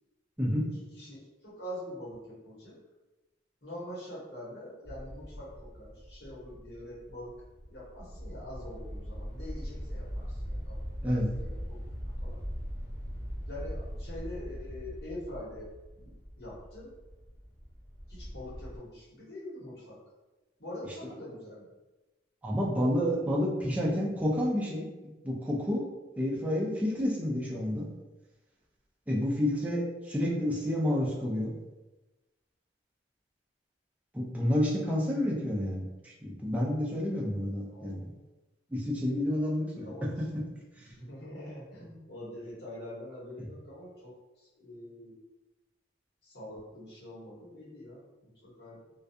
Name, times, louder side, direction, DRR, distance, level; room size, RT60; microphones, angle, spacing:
voice 1, 0.6-2.7 3.6-7.3 7.7-10.8 11.1-11.8 12.2-12.4 13.5-15.7 16.0-16.1 16.4-16.9 18.1-20.0 20.6-21.6 37.6-37.9 39.8-45.2 46.2-48.8, left 1 dB, 60° left, -8 dB, 1.1 m, -44 dB
sound 1, 4.8-18.8, equal, 30° left, 1.2 m, -41 dB
voice 2, 22.4-24.9 25.2-25.9 26.2-27.9 29.1-31.5 34.1-38.0 38.7-39.9 40.3-40.4, left 1 dB, 10° right, -5 dB, 0.4 m, -29 dB
2.3 x 2.2 x 2.6 m, 1.1 s
head